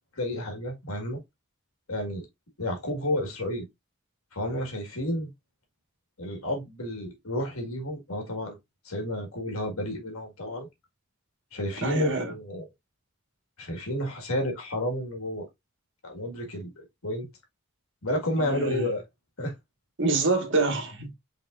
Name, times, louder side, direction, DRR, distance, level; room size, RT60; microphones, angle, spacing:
voice 1, 0.2-1.2 1.9-2.3 2.6-3.7 4.3-5.3 6.2-8.6 8.9-10.7 11.5-12.7 13.6-15.5 16.0-17.3 18.0-19.0 19.4-19.5, left 1 dB, 85° left, 1.8 m, -31 dB
voice 2, 11.8-12.3 18.3-18.9 20.0-21.1, right 3 dB, 60° right, 1.6 m, -26 dB
5.3 x 3.7 x 2.5 m
head